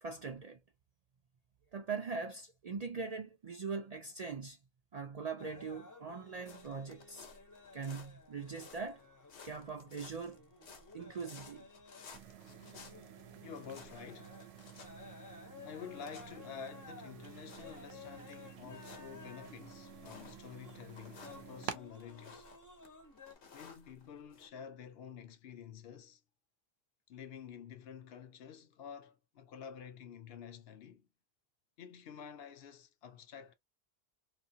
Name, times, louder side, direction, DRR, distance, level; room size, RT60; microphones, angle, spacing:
voice 1, 0.0-0.6 1.7-4.6 4.9-7.3 7.7-9.0 9.4-10.4 10.9-11.7, right 5 dB, 55° right, 0.4 m, -41 dB
sound 1, 5.4-23.3, left 4 dB, 20° left, 0.6 m, -55 dB
sound 2, 6.3-24.5, left 5 dB, 85° left, 1.0 m, -58 dB
sound 3, 12.1-21.8, right 9 dB, 75° right, 0.8 m, -51 dB
voice 2, 13.3-14.4 15.6-22.5 23.5-26.2 27.1-31.1 31.8-33.5, left 7 dB, 70° left, 0.8 m, -50 dB
2.7 x 2.4 x 2.6 m
omnidirectional pair, 1.1 m